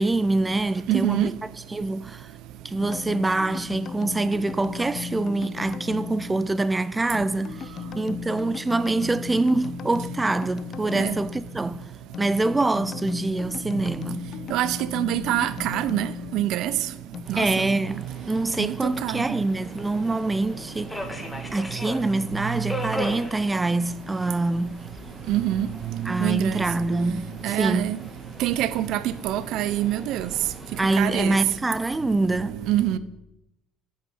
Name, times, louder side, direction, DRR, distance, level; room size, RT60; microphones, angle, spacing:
voice 1, 0.0-1.3 1.7-2.3 2.6-11.8 12.2-14.3 17.3-21.0 21.5-24.8 26.0-27.9 30.8-32.6, right 2 dB, 15° right, 0.6 m, -25 dB
voice 2, 0.9-1.3 11.0-11.2 14.5-16.7 17.3-17.7 18.6-18.7 19.0-19.4 25.3-25.7 25.9-26.6 27.4-28.0 28.4-30.3 31.0-31.4 32.7-33.0, right 13 dB, 65° right, 1.0 m, -25 dB
sound 1, 2.8-17.2, left 7 dB, 50° left, 0.8 m, -37 dB
Subway metro underground, 17.2-31.0, left 1 dB, 10° left, 2.6 m, -40 dB
9.1 x 8.9 x 9.6 m
hypercardioid pair, 70°, 0 cm